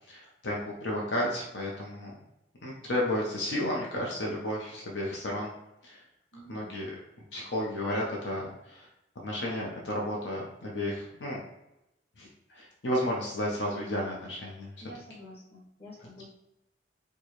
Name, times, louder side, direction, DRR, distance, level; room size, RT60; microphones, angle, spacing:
voice 1, 0.1-2.1 2.6-5.5 5.8-6.0 6.5-6.9 7.3-8.9 9.2-11.4 12.2-14.7 16.0-16.3, left 1 dB, 80° left, -3 dB, 0.8 m, -32 dB
voice 2, 6.3-6.7 14.8-16.3, left 1 dB, 35° left, -5 dB, 1.4 m, -48 dB
4.5 x 2.3 x 3.1 m, 0.88 s
head